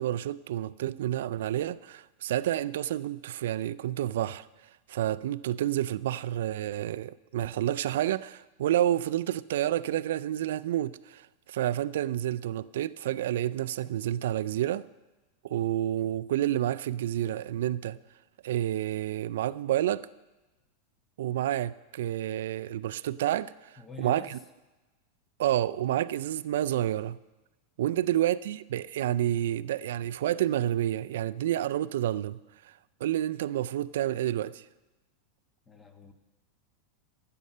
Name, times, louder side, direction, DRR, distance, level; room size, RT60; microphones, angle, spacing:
voice 1, 0.0-4.5 4.9-14.8 15.4-18.0 18.4-20.1 21.2-24.4 25.4-27.2 27.8-32.4 32.6-32.7 33.0-34.6, right 12 dB, 80° right, 0.4 m, -29 dB
voice 2, 23.8-24.4 27.9-28.2 35.6-36.1, left 3 dB, 20° left, 1.2 m, -46 dB
12.0 x 8.5 x 5.5 m
supercardioid pair, 130°, 0 cm